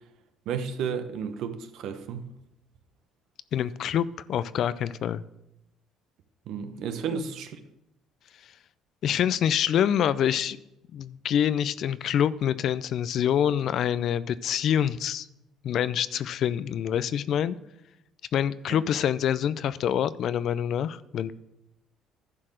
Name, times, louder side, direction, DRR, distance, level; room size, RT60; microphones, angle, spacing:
voice 1, 0.5-2.2 6.5-7.6, right 7 dB, 70° right, 0.9 m, -32 dB
voice 2, 3.5-5.2 7.1-7.2 9.0-10.6 10.9-15.3 15.6-17.6 18.3-21.3, left 9 dB, 60° left, 0.4 m, -26 dB
11.0 x 4.6 x 6.3 m
supercardioid pair, 80°, 0 cm